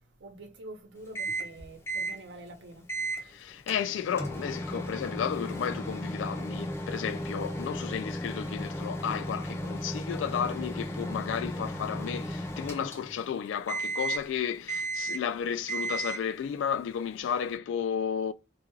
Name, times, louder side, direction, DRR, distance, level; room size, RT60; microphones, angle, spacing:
voice 1, 0.2-2.9, right 1 dB, 65° right, 0.8 m, -46 dB
Microwave oven, 1.2-1.6 1.9-2.2 2.9-3.2 3.7-13.3 13.7-14.3 14.7-15.3 15.7-16.3, right 1 dB, 15° left, 0.5 m, -35 dB
voice 2, 3.2-18.3, left 8 dB, 85° left, 0.3 m, -33 dB
2.4 x 2.3 x 3.0 m
head